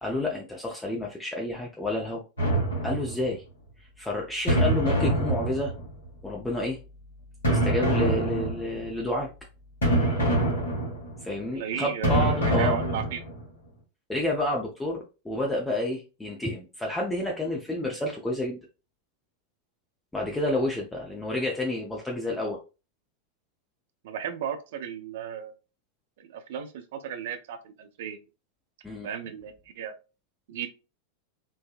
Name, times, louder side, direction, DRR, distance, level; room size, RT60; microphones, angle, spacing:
voice 1, 0.0-2.2 2.8-3.4 3.8-5.7 6.2-6.8 7.5-9.3 11.2-12.8 14.1-18.6 20.1-22.6 28.8-29.1, left 1 dB, 10° left, -2 dB, 0.5 m, -30 dB
sound 1, 2.4-3.4 4.5-6.1 7.4-8.9 9.8-11.3 12.0-13.4, right 1 dB, 70° left, 1.1 m, -25 dB
voice 2, 11.5-12.2 12.4-13.2 24.0-25.5 26.2-28.2 29.0-29.9 30.5-30.7, right 8 dB, 55° right, 9 dB, 0.4 m, -35 dB
3.3 x 2.1 x 2.3 m, 0.31 s
figure-of-eight pair, 90°, 0 cm